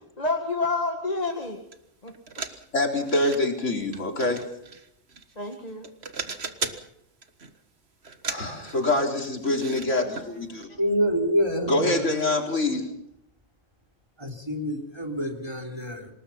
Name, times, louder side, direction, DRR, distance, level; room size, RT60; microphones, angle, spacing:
voice 1, 0.2-1.6 2.0-2.1 5.4-5.9, left 3 dB, 35° left, 2.0 m, -28 dB
sound 1, 1.7-1.8 2.1-3.4 3.9-5.6 5.8-6.9 7.2-7.6 8.0-9.9 10.2-10.3 10.6-10.7, right 4 dB, 55° right, 1.8 m, -37 dB
voice 2, 2.7-4.4 8.3-10.7 11.7-12.9, left 2 dB, 75° left, 4.2 m, -25 dB
voice 3, 10.8-12.1 14.2-16.1, equal, 20° right, 3.4 m, -27 dB
27.5 x 19.5 x 5.7 m
omnidirectional pair, 1.3 m